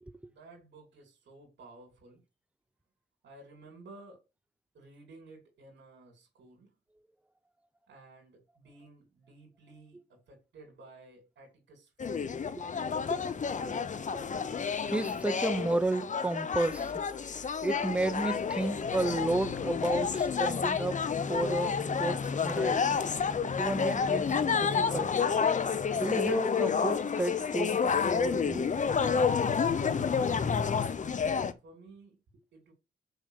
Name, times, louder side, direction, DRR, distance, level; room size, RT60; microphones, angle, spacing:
voice 1, 0.3-2.2 3.2-4.2 4.7-6.7 7.9-12.4 29.8-29.9 31.6-32.7, right 2 dB, 70° right, 3.4 m, -54 dB
sound 1, 12.0-31.5, left 6 dB, 40° left, 1.0 m, -30 dB
voice 2, 14.9-16.9 17.6-22.8 23.6-25.2 25.9-27.8 28.1-28.7, right 2 dB, 5° right, 0.8 m, -32 dB
6.6 x 5.0 x 6.6 m
cardioid pair, 85°, 19 cm